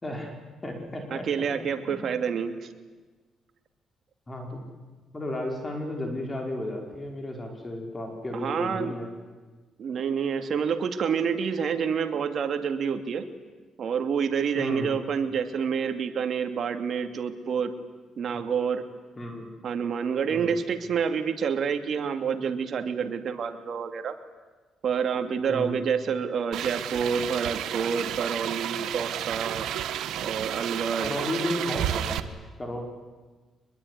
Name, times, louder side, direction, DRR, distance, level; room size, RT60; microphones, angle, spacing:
voice 1, 0.0-1.3 1.9-2.1 4.3-4.6 5.1-9.1 14.6-14.9 19.2-19.5 20.3-20.5 25.5-25.8 31.0-32.3 32.6-32.8, left 1 dB, 20° left, 2 dB, 5.1 m, -33 dB
voice 2, 1.1-2.7 8.3-8.9 9.8-13.3 13.8-17.7 18.2-18.8 19.6-24.2 24.8-29.7 30.2-31.1, right 6 dB, 60° right, 7 dB, 2.7 m, -28 dB
sound 1, 26.5-32.2, right 11 dB, 80° right, 1.4 m, -31 dB
25.0 x 21.5 x 9.9 m, 1.3 s
cardioid pair, 90°, 0 cm